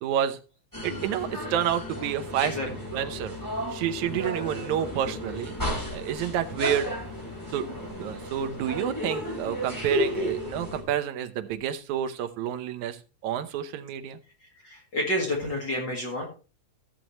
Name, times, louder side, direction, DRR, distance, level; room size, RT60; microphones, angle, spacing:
voice 1, 0.0-0.4 0.8-2.5 2.9-3.4 3.7-5.6 5.9-6.9 7.5-14.2, right 10 dB, 75° right, 8 dB, 2.2 m, -29 dB
sound 1, 0.7-10.8, equal, 5° left, 4.5 m, -33 dB
voice 2, 14.4-16.3, left 1 dB, 40° left, -1 dB, 2.3 m, -30 dB
14.0 x 7.5 x 3.1 m, 0.33 s
omnidirectional pair, 3.6 m